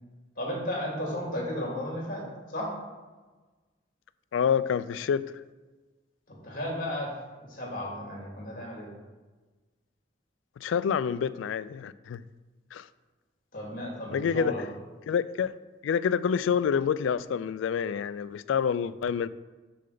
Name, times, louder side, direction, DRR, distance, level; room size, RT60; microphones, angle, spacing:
voice 1, 0.4-2.7 6.3-7.2 7.4-8.9 13.5-14.6, left 1 dB, 45° left, -3 dB, 2.3 m, -34 dB
voice 2, 4.3-5.3 10.6-12.2 12.7-12.9 14.1-14.5 15.1-15.5 15.8-19.3, left 7 dB, 85° left, 16 dB, 0.3 m, -27 dB
6.8 x 6.4 x 3.9 m, 1.3 s
head